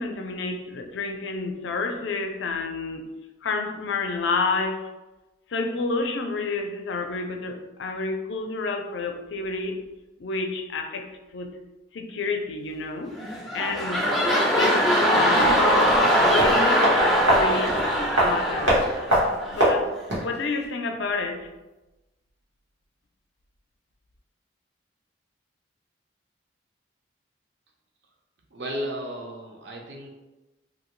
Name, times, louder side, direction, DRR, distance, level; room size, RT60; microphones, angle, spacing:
voice 1, 0.0-3.1 3.4-4.8 5.5-9.8 10.2-11.5 11.9-13.2 13.5-14.1 14.6-16.9 17.2-17.8 18.2-18.8 19.5-19.9 20.2-21.5, left 3 dB, 70° left, 4 dB, 0.4 m, -29 dB
sound 1, 13.2-19.7 20.2-20.3, equal, ahead, 0.4 m, -22 dB
sound 2, 15.4-20.4 20.6-20.7, equal, 85° right, 1.2 m, -24 dB
voice 2, 28.5-30.1, equal, 60° right, 0 dB, 0.6 m, -34 dB
2.8 x 2.6 x 3.0 m, 1.1 s
head